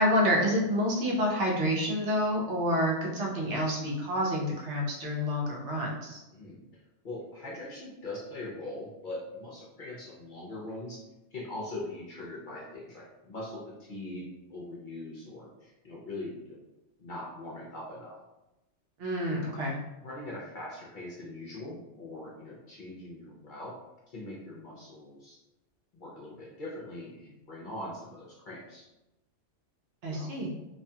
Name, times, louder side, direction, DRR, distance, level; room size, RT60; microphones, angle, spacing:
voice 1, 0.0-6.2 19.0-19.8 30.0-30.5, equal, 75° right, -2 dB, 1.0 m, -28 dB
voice 2, 6.3-6.6 7.0-11.0 11.3-16.6 17.0-18.2 19.3-19.5 20.0-23.8 24.1-25.4 25.9-28.9 30.1-30.3, left 2 dB, 55° left, -5 dB, 0.6 m, -41 dB
2.6 x 2.3 x 2.7 m, 0.98 s
omnidirectional pair, 1.2 m